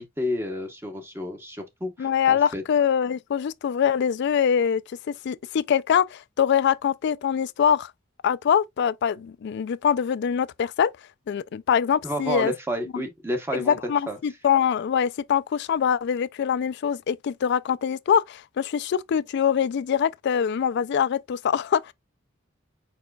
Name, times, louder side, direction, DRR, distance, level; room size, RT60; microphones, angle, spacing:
voice 1, 0.0-2.6 12.0-13.8 14.1-14.2, equal, 10° right, 0.8 m, -30 dB
voice 2, 2.0-4.8 5.2-7.9 8.2-10.9 11.3-12.5 12.9-13.0 13.5-21.9, left 8 dB, 55° left, 0.3 m, -23 dB
4.8 x 4.4 x 2.3 m
head